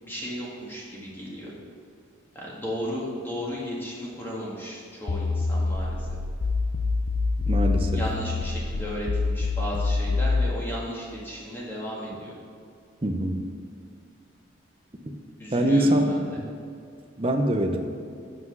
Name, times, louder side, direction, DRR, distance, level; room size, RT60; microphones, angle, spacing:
voice 1, 0.0-1.5 2.3-6.1 7.9-12.3 15.4-16.2, equal, 10° left, -5 dB, 1.7 m, -34 dB
sound 1, 5.1-10.5, left 3 dB, 65° left, 0.5 m, -26 dB
voice 2, 7.5-8.0 13.0-13.4 15.1-15.2 15.5-16.5 17.2-17.8, right 1 dB, 30° right, 3 dB, 0.6 m, -24 dB
7.6 x 6.0 x 6.0 m, 2.4 s
head